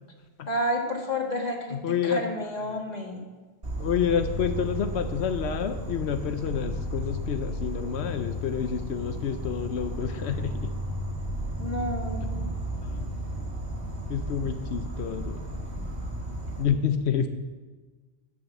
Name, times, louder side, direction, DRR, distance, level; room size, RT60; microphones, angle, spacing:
voice 1, 0.5-3.2 11.6-12.5, equal, 40° left, 1 dB, 1.9 m, -30 dB
voice 2, 1.4-2.2 3.8-10.7 12.2-12.5 12.8-13.2 14.1-15.4 16.6-17.3, left 7 dB, 85° left, 9 dB, 1.0 m, -29 dB
Insect, 3.6-16.6, equal, 65° right, 2.4 m, -33 dB
13.0 x 6.4 x 7.2 m, 1.3 s
omnidirectional pair, 1.1 m